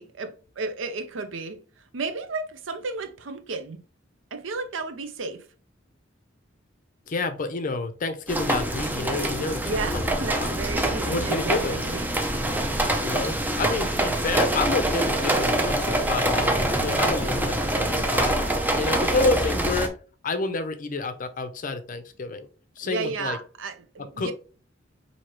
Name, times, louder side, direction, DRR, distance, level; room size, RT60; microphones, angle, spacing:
voice 1, 0.0-1.6 1.9-3.8 4.3-5.5 9.7-12.0 18.8-19.3 22.8-24.3, right 4 dB, 85° right, 0.6 m, -33 dB
voice 2, 7.1-10.1 10.4-10.5 11.1-11.8 13.0-18.4 18.7-19.9 20.2-22.5 22.8-23.4 24.2-24.3, left 3 dB, 45° left, 0.5 m, -29 dB
sound 1, 8.3-19.9, right 1 dB, 10° right, 0.5 m, -25 dB
4.5 x 2.8 x 3.0 m
head